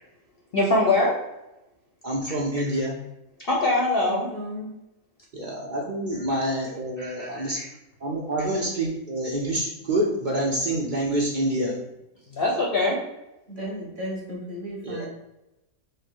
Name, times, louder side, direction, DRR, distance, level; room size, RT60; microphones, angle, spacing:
voice 1, 0.5-1.1 2.6-2.7 3.5-4.3 7.0-7.7 12.3-13.0, left 2 dB, 50° left, -2 dB, 0.7 m, -23 dB
voice 2, 2.0-3.0 5.3-7.6 8.0-11.8 14.8-15.1, right 1 dB, 80° right, -2 dB, 0.4 m, -27 dB
voice 3, 4.0-4.7 13.5-15.1, equal, 35° right, -4 dB, 1.2 m, -34 dB
4.8 x 2.1 x 4.5 m, 0.93 s
omnidirectional pair, 1.6 m